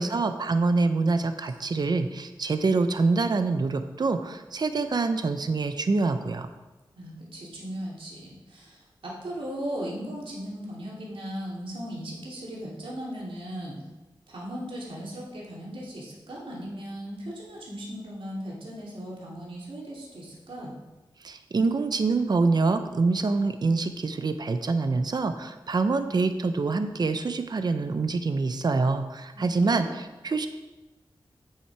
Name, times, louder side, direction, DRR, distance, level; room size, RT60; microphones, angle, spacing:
voice 1, 0.0-6.5 21.2-30.5, right 3 dB, 50° right, 8 dB, 0.7 m, -25 dB
voice 2, 6.9-13.8 14.3-20.8 29.3-29.9, equal, 85° right, -4 dB, 2.8 m, -37 dB
8.7 x 8.7 x 4.7 m, 1.1 s
wide cardioid pair, 120°, 9 cm